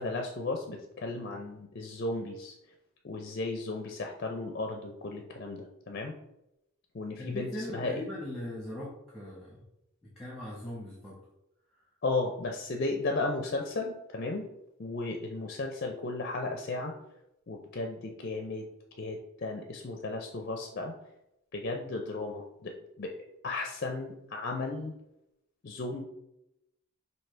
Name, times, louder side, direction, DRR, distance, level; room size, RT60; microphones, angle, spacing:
voice 1, 0.0-2.5 3.0-6.2 6.9-8.0 12.0-14.5 14.8-16.9 17.5-18.7 19.0-20.9 21.5-23.1 23.4-24.9 25.6-26.0, left 2 dB, 45° left, 2 dB, 0.5 m, -35 dB
voice 2, 7.2-9.6 10.0-11.2, left 1 dB, ahead, -5 dB, 1.1 m, -40 dB
5.8 x 2.7 x 3.3 m, 0.86 s
head